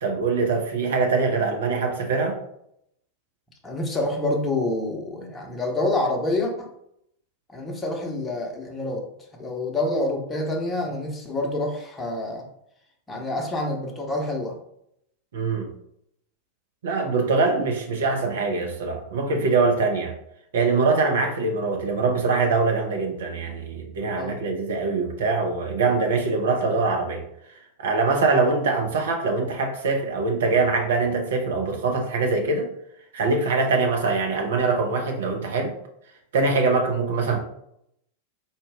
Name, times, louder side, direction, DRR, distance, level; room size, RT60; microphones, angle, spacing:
voice 1, 0.0-2.4 15.3-15.7 16.8-20.1 20.5-27.2 27.8-32.7 33.1-35.7 36.3-37.4, right 3 dB, 60° right, 2 dB, 0.8 m, -23 dB
voice 2, 3.6-6.7 7.5-9.1 9.4-12.5 13.1-14.6 24.2-24.4, left 2 dB, 15° left, 1 dB, 0.9 m, -27 dB
4.1 x 2.4 x 3.4 m, 0.76 s
figure-of-eight pair, 90°, 0 cm